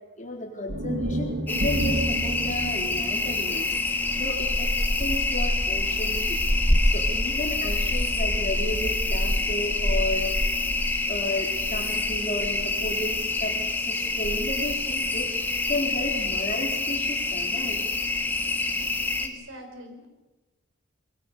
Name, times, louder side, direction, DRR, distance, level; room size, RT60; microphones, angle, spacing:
voice 1, 0.2-6.4 6.8-10.5 11.1-17.8, left 1 dB, 35° left, 1 dB, 4.1 m, -33 dB
sound 1, 0.7-4.9, right 1 dB, 65° right, 2.1 m, -31 dB
sound 2, 1.5-19.3, left 2 dB, 10° left, 1.8 m, -26 dB
voice 2, 19.2-20.1, equal, 80° right, 5 dB, 5.1 m, -43 dB
25.0 x 22.0 x 7.0 m, 1.1 s
head